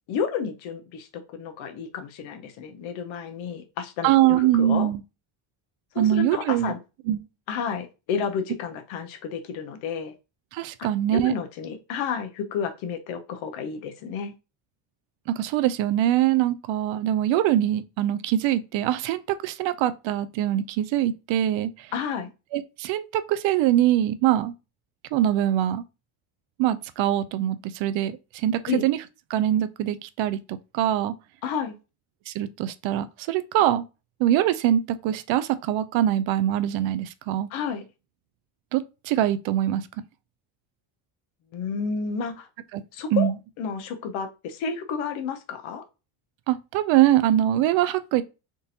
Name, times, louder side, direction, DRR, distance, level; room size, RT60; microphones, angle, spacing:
voice 1, 0.1-4.9 5.9-6.8 7.5-10.1 10.8-14.3 21.9-22.3 28.7-28.8 31.4-31.7 37.5-37.8 41.5-42.5 42.9-43.3 43.6-45.8, left 6 dB, 80° left, 0.8 m, -31 dB
voice 2, 4.0-5.0 6.0-6.7 7.1-7.3 10.5-11.3 15.3-21.9 22.5-24.5 25.1-25.8 26.6-29.0 29.3-31.1 32.3-33.8 34.2-37.5 38.7-39.9 42.7-42.8 43.1-43.3 46.5-48.2, right 12 dB, 70° right, 0.5 m, -23 dB
3.7 x 2.5 x 2.8 m
cardioid pair, 95°, 47 cm